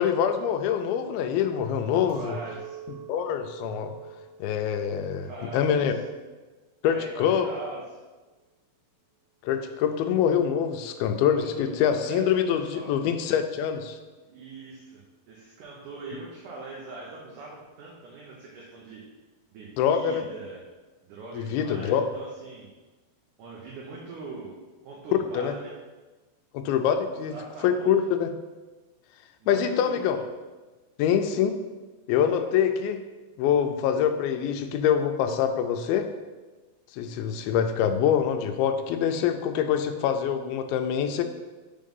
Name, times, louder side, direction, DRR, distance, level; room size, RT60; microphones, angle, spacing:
voice 1, 0.0-2.4 3.1-3.9 4.4-5.9 6.8-7.5 9.4-14.0 19.8-20.2 21.3-22.1 25.3-25.5 26.5-27.3 27.6-28.3 29.5-30.2 31.0-31.6 32.1-33.0 33.4-36.1 36.9-41.2, left 8 dB, 90° left, 7 dB, 2.4 m, -25 dB
voice 2, 2.1-2.8 5.2-6.0 6.8-8.0 11.3-13.0 14.2-19.0 19.5-20.6 21.0-22.7 23.4-24.6 24.8-25.7 27.3-27.9 29.4-30.0, right 3 dB, 70° right, -3 dB, 2.1 m, -42 dB
Chink clink, 2.1-7.6, right 9 dB, 90° right, 3.0 m, -46 dB
6.0 x 3.7 x 5.3 m, 1.2 s
omnidirectional pair, 4.2 m